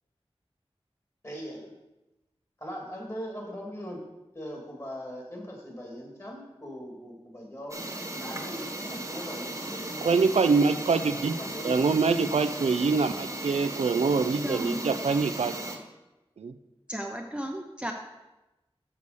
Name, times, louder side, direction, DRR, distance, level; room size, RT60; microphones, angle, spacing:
voice 1, 1.2-1.7 2.6-4.1 4.3-7.8 8.1-10.1 11.3-12.0, equal, 30° left, -1 dB, 2.5 m, -40 dB
sound 1, 7.7-15.8, right 1 dB, 30° right, 1.2 m, -36 dB
voice 2, 10.0-11.4 11.6-15.5 16.4-16.5, right 4 dB, 90° right, 10 dB, 0.4 m, -24 dB
voice 3, 14.0-15.0 16.9-17.9, right 1 dB, 10° right, 1 dB, 0.7 m, -35 dB
6.9 x 4.7 x 6.8 m, 1.0 s
wide cardioid pair, 50°, 11 cm